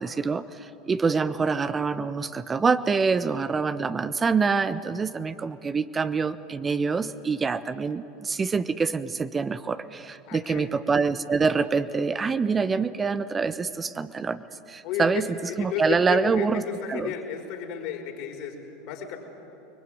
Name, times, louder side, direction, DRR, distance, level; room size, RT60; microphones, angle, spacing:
voice 1, 0.0-15.3 15.6-16.6 16.9-17.1, right 5 dB, 25° right, 12 dB, 1.0 m, -26 dB
voice 2, 10.3-10.7 14.8-19.2, left 8 dB, 60° left, 3 dB, 4.9 m, -33 dB
29.5 x 21.5 x 9.4 m, 2.9 s
hypercardioid pair, 80°, 0 cm